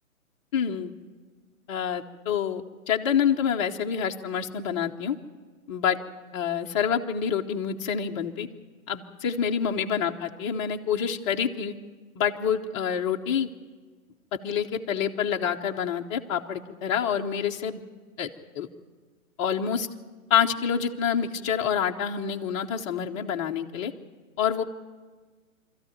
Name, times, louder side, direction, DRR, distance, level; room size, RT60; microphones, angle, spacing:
voice 1, 0.5-0.9 1.7-5.2 5.7-6.0 6.3-8.5 8.9-11.7 12.2-13.5 14.4-17.8 18.2-18.3 18.6-18.7 19.4-19.9 20.3-23.9 24.4-24.6, left 8 dB, 20° left, 2 dB, 0.9 m, -27 dB
25.0 x 14.0 x 9.4 m, 1.4 s
figure-of-eight pair, 125°, 42 cm